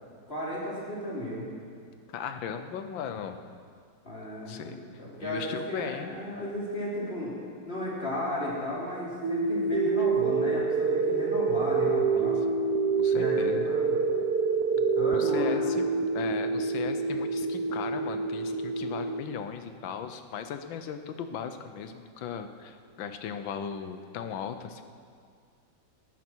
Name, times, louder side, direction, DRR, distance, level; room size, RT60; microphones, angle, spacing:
voice 1, 0.3-1.5 4.0-7.3 7.7-12.4 13.1-13.9 14.7-15.6, left 1 dB, 30° left, -6 dB, 3.9 m, -34 dB
voice 2, 2.1-3.4 4.5-4.8 5.2-6.1 12.2-12.6 13.0-13.7 15.1-15.8 16.1-24.8, left 7 dB, 75° left, 8 dB, 1.6 m, -37 dB
sound 1, 9.2-19.2, right 4 dB, 60° right, 1.1 m, -27 dB
19.5 x 12.0 x 4.6 m, 2.2 s
omnidirectional pair, 2.2 m